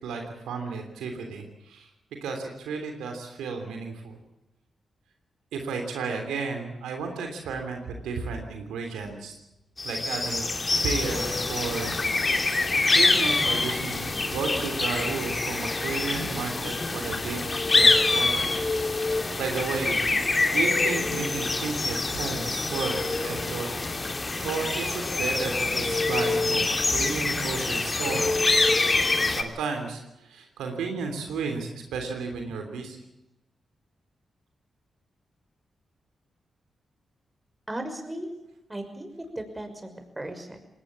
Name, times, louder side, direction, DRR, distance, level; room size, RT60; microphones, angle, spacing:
voice 1, 0.0-1.9 2.2-4.2 5.5-9.3 9.8-10.4 10.8-12.0 12.9-17.4 17.7-19.1 19.4-20.0 20.5-23.7 24.4-28.3 29.3-33.0, right 4 dB, 90° right, 4 dB, 3.2 m, -33 dB
sound 1, 9.8-29.4, left 3 dB, 35° left, 2.8 m, -25 dB
voice 2, 37.7-38.3 38.7-39.1 39.4-40.6, right 1 dB, 20° right, 6 dB, 5.9 m, -36 dB
20.0 x 18.5 x 8.6 m, 0.92 s
supercardioid pair, 50°, 0 cm